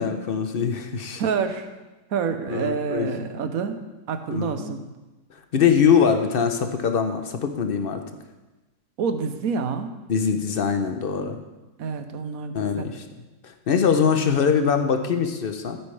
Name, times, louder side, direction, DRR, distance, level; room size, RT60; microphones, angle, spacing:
voice 1, 0.0-1.2 2.5-3.4 4.3-4.6 5.5-8.0 10.1-11.4 12.5-13.0 13.4-15.8, left 6 dB, 50° left, 7 dB, 0.7 m, -23 dB
voice 2, 1.2-1.7 2.1-3.8 4.1-4.8 9.0-9.9 11.8-12.9, right 6 dB, 65° right, 8 dB, 1.2 m, -27 dB
14.5 x 9.0 x 3.3 m, 1.1 s
omnidirectional pair, 1.7 m